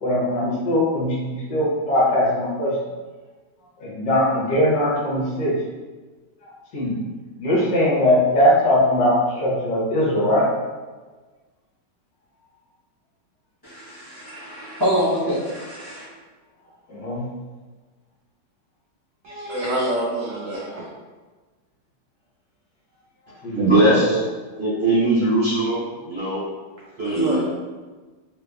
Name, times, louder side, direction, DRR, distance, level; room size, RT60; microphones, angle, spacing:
voice 1, 0.0-2.7 3.8-5.5 6.7-7.0 7.4-10.5 16.9-17.2 23.4-23.8 24.0-24.1, left 1 dB, 70° left, -6 dB, 1.5 m, -20 dB
voice 2, 13.6-16.1, equal, 20° left, -12 dB, 0.7 m, -25 dB
voice 3, 19.2-20.9 27.0-27.4, right 1 dB, 80° right, -5 dB, 0.7 m, -26 dB
voice 4, 23.5-24.2 24.6-26.4 27.0-27.4, right 1 dB, 45° right, -11 dB, 0.9 m, -20 dB
3.3 x 2.8 x 2.3 m, 1.3 s
omnidirectional pair, 2.0 m